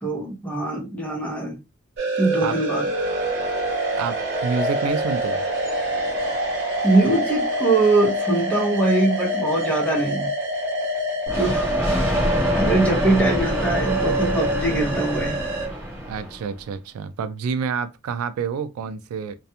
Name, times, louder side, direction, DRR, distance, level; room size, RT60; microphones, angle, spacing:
voice 1, 0.0-1.6 2.2-2.9 6.8-10.3 11.3-12.1 12.5-15.4, right 2 dB, 5° left, 0.8 m, -22 dB
sound 1, 2.0-15.7, right 1 dB, 55° right, 0.9 m, -26 dB
voice 2, 4.0-5.4 16.1-19.3, right 6 dB, 90° right, 0.3 m, -28 dB
Thunder, 11.3-16.6, equal, 15° right, 1.1 m, -26 dB
2.4 x 2.2 x 2.7 m
head